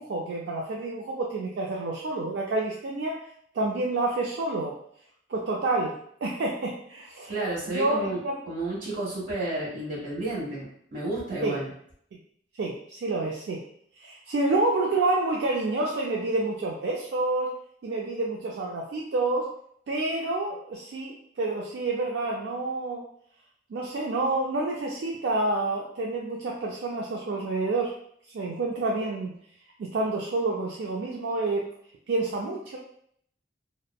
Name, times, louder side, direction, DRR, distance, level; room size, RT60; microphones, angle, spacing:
voice 1, 0.0-3.2 3.5-4.8 5.3-7.4 7.7-8.4 11.4-11.6 12.6-13.6 14.0-17.5 17.8-19.5 19.9-23.0 23.7-27.9 28.3-29.4 29.8-31.7 32.1-32.8, right 2 dB, 70° right, -2 dB, 0.3 m, -28 dB
voice 2, 7.3-8.2 8.5-11.7, right 2 dB, 50° right, -6 dB, 1.2 m, -31 dB
3.4 x 2.0 x 2.2 m, 0.66 s
head